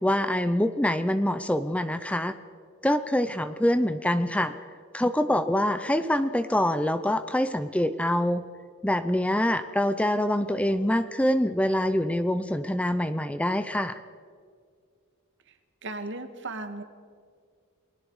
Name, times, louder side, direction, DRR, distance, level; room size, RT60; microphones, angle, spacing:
voice 1, 0.0-2.3 2.8-4.6 4.9-8.5 8.8-14.0, left 1 dB, 5° left, 11 dB, 0.6 m, -25 dB
voice 2, 15.8-16.8, right 2 dB, 55° right, 8 dB, 1.8 m, -36 dB
29.5 x 21.0 x 4.8 m, 2.1 s
head